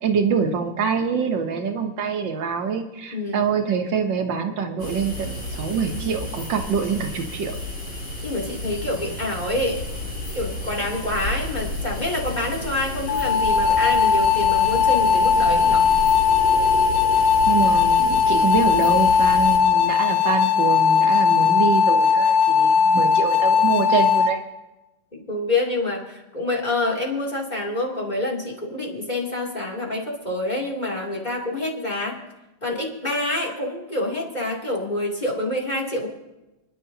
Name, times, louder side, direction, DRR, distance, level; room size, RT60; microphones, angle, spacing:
voice 1, 0.0-7.5 17.5-24.4, right 6 dB, 75° right, 5 dB, 1.7 m, -25 dB
voice 2, 3.1-3.5 8.2-9.8 10.3-15.9 25.1-32.2 32.6-36.1, left 2 dB, 20° left, -3 dB, 2.9 m, -27 dB
sound 1, 4.8-19.6, left 1 dB, 40° left, 3.4 m, -32 dB
sound 2, 13.1-24.3, left 6 dB, 70° left, 1.3 m, -18 dB
29.5 x 11.0 x 2.8 m, 1.0 s
omnidirectional pair, 2.0 m